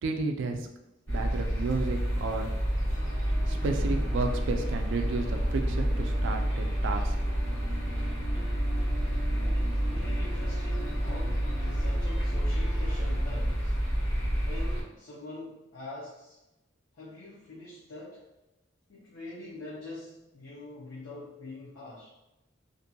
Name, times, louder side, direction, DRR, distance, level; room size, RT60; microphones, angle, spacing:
voice 1, 0.0-0.7 1.1-2.5 3.4-7.2, right 3 dB, 65° right, 5 dB, 0.3 m, -32 dB
sound 1, 1.1-14.8, equal, 85° left, 1.3 m, -29 dB
sound 2, 2.9-13.2, right 2 dB, 5° right, 0.5 m, -46 dB
voice 2, 9.4-13.8 14.4-16.4 16.9-18.3 18.9-22.1, left 2 dB, 70° left, -5 dB, 0.6 m, -44 dB
2.5 x 2.2 x 2.6 m, 0.93 s
head